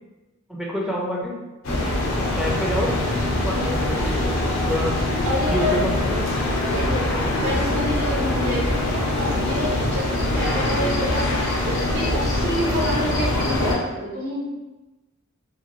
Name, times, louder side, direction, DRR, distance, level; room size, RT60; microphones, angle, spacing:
voice 1, 0.5-1.4 2.2-3.0 3.4-4.4 4.7-5.0 5.5-5.9 7.1-7.3, equal, ahead, -3 dB, 0.3 m, -27 dB
sound 1, 1.6-13.8, left 1 dB, 80° left, 0.6 m, -23 dB
voice 2, 5.2-5.8 6.6-7.1 7.4-14.5, equal, 80° right, -4 dB, 0.9 m, -28 dB
2.8 x 2.2 x 2.9 m, 1.1 s
head